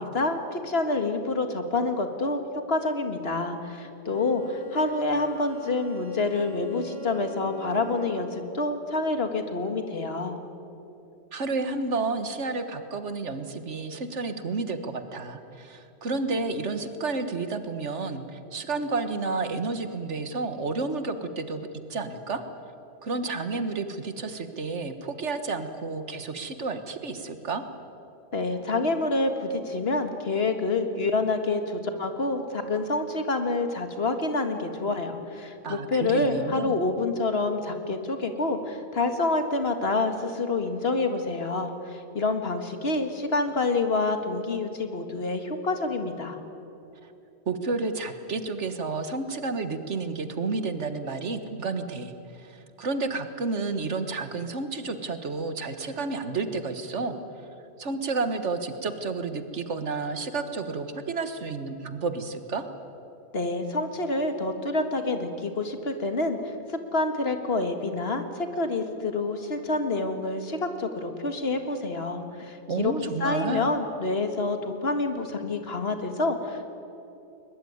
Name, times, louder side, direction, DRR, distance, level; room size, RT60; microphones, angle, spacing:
voice 1, 0.0-10.4 28.3-46.4 63.3-76.7, left 3 dB, 60° left, 7 dB, 2.1 m, -27 dB
Bowed string instrument, 4.1-8.5, right 1 dB, 30° right, 5.5 m, -42 dB
voice 2, 11.3-22.4 23.0-27.6 35.6-36.8 47.0-47.1 47.5-57.2 57.8-62.7 72.7-73.7, right 3 dB, 90° right, 9 dB, 1.8 m, -31 dB
21.5 x 21.0 x 9.5 m, 2.8 s
omnidirectional pair, 1.2 m